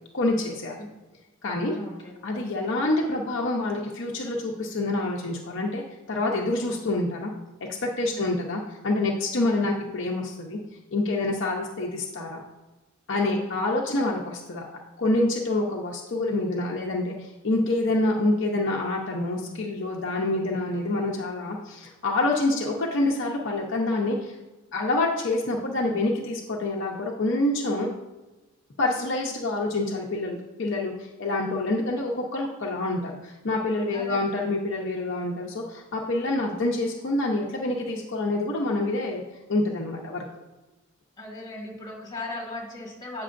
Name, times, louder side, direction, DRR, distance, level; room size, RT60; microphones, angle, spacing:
voice 1, 0.1-0.9 1.4-1.7 2.2-5.8 6.1-7.3 7.8-10.6 10.9-12.4 13.1-14.6 15.0-24.3 24.7-27.9 28.8-39.2 39.5-40.2, left 2 dB, 65° left, -2 dB, 0.7 m, -27 dB
voice 2, 1.7-2.1 8.1-8.3 13.2-13.6 33.9-34.2 41.2-43.2, left 2 dB, 20° left, -4 dB, 2.1 m, -37 dB
8.5 x 6.1 x 2.5 m, 1.1 s
head